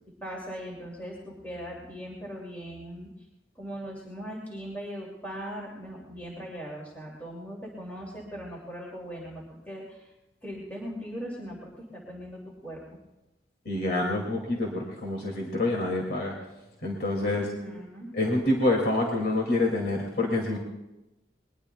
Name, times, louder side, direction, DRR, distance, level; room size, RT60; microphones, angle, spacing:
voice 1, 0.2-3.1 3.6-10.1 10.4-12.8 17.2-18.1, equal, 10° left, -4 dB, 2.5 m, -39 dB
voice 2, 13.7-16.3 16.8-17.4 18.1-20.6, left 2 dB, 55° left, -1 dB, 2.3 m, -27 dB
22.0 x 20.5 x 2.3 m, 0.99 s
head